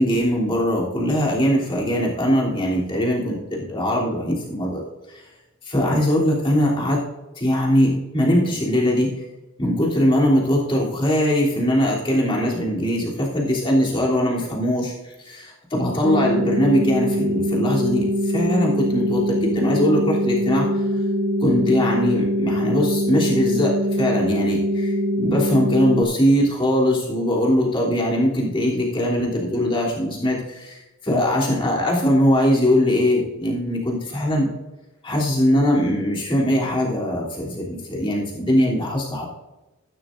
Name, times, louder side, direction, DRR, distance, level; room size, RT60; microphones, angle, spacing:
voice 1, 0.0-4.8 5.1-5.2 5.6-7.0 7.3-9.1 9.6-20.8 21.4-34.5 35.0-39.3, equal, 25° left, -5 dB, 3.2 m, -21 dB
sound 1, 16.0-26.0, equal, 45° right, 1.2 m, -23 dB
14.5 x 12.5 x 2.6 m, 1.1 s
head